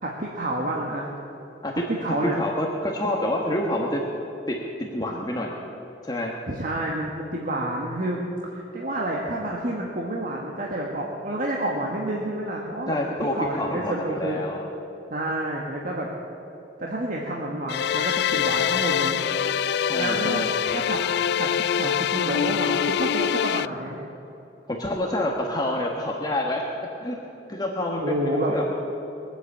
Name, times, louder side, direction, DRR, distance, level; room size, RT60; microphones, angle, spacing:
voice 1, 0.0-1.1 1.9-2.3 6.5-13.0 13.3-14.4 15.1-16.1 16.8-19.2 19.9-21.0 21.4-24.0 28.0-28.5, right 1 dB, 50° right, -2 dB, 1.6 m, -29 dB
voice 2, 1.6-4.0 4.5-5.5 6.0-6.3 12.9-14.6 19.8-20.5 24.7-26.6 27.0-28.6, left 1 dB, 20° left, -1 dB, 1.3 m, -28 dB
sound 1, 17.7-23.7, left 8 dB, 65° left, 0.3 m, -24 dB
21.5 x 8.0 x 8.5 m, 3.0 s
head